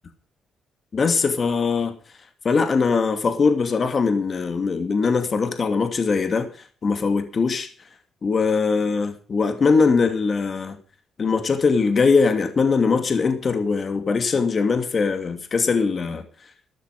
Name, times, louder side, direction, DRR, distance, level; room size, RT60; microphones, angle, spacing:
voice 1, 0.9-1.9 2.4-6.5 6.8-7.7 8.2-10.8 11.2-16.2, left 4 dB, 40° left, 2.6 m, -21 dB
13.0 x 12.5 x 4.9 m
cardioid pair, 90°, 0 cm